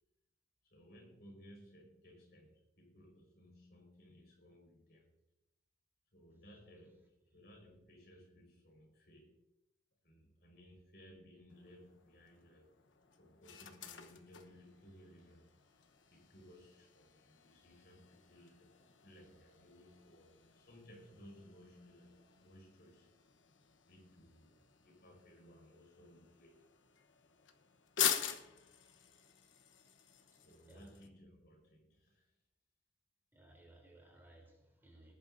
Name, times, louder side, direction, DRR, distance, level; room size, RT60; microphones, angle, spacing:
voice 1, 0.6-5.1 6.1-9.4 10.0-12.7 13.2-23.1 23.9-26.6 30.4-32.3, equal, 55° left, 1 dB, 4.9 m, -60 dB
sound 1, 11.5-31.1, left 9 dB, 85° left, 1.1 m, -46 dB
voice 2, 33.3-35.1, right 1 dB, 10° right, -1 dB, 3.5 m, -61 dB
19.5 x 11.0 x 2.7 m, 0.88 s
head